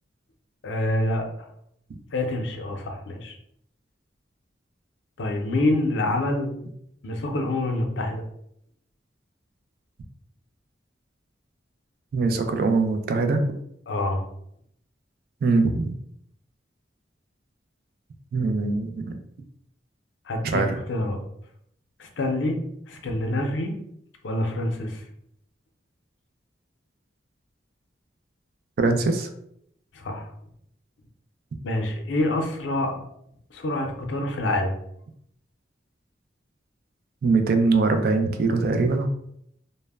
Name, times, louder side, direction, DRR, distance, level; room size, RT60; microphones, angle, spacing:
voice 1, 0.6-1.3 2.1-3.4 5.2-6.6 7.0-8.2 13.9-14.2 20.3-20.6 20.9-21.2 22.0-22.6 22.9-23.7 24.2-25.0 29.9-30.3 31.6-33.0 33.5-34.7, left 1 dB, 80° left, 3 dB, 0.5 m, -26 dB
voice 2, 12.1-13.5 15.4-16.0 18.3-19.2 20.4-20.8 28.8-29.3 37.2-39.1, right 3 dB, 55° right, 6 dB, 0.3 m, -22 dB
2.1 x 2.0 x 3.4 m, 0.73 s
head